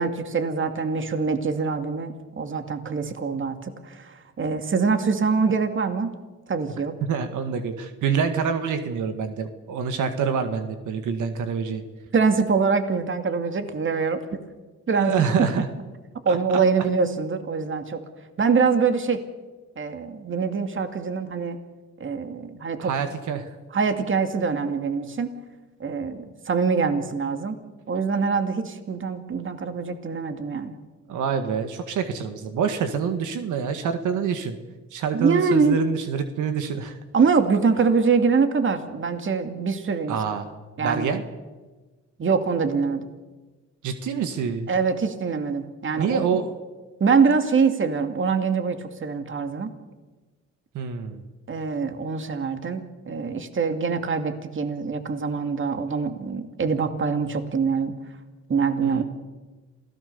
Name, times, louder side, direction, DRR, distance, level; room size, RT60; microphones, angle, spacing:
voice 1, 0.0-6.1 6.5-6.9 12.1-14.2 14.9-15.1 16.2-18.0 18.4-19.2 19.8-21.6 22.0-22.9 23.7-25.3 25.8-27.6 27.9-30.8 35.1-35.8 37.1-40.2 40.8-41.1 42.2-43.1 44.7-46.4 47.0-49.7 51.5-57.9 58.5-59.0, right 5 dB, 40° right, 7 dB, 2.5 m, -24 dB
voice 2, 7.0-11.8 14.9-15.7 16.3-16.4 22.8-23.5 31.1-34.6 34.9-37.0 40.1-40.5 40.8-41.2 43.8-44.7 45.9-46.6 50.7-51.2 58.8-59.0, right 6 dB, 80° right, 7 dB, 1.9 m, -26 dB
27.5 x 17.0 x 7.0 m, 1.2 s
cardioid pair, 90°, 30 cm